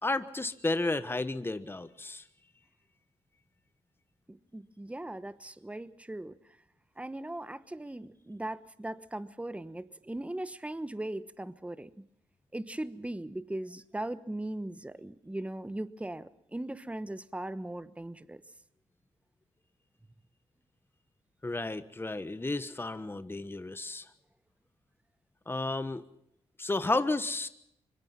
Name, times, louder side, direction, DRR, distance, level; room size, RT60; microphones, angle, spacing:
voice 1, 0.0-2.2 21.4-24.0 25.5-26.0 26.6-27.5, left 2 dB, 20° left, 12 dB, 1.2 m, -32 dB
voice 2, 4.3-6.4 7.0-11.9 12.5-18.4, right 1 dB, 10° right, 14 dB, 1.1 m, -39 dB
25.0 x 22.0 x 5.7 m, 0.77 s
supercardioid pair, 50°, 12 cm